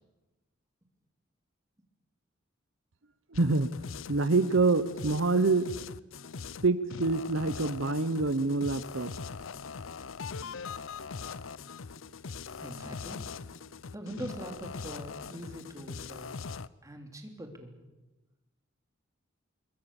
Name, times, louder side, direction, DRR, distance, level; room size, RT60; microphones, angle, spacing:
sound 1, 3.3-16.7, left 5 dB, 75° left, 0.7 m, -42 dB
voice 1, 3.3-3.7 4.1-5.7 6.6-9.1, right 3 dB, 70° right, 13 dB, 0.9 m, -26 dB
voice 2, 12.5-13.2 13.9-16.3 16.8-17.7, right 1 dB, 15° right, 4 dB, 3.4 m, -42 dB
25.5 x 22.5 x 7.1 m, 1.1 s
head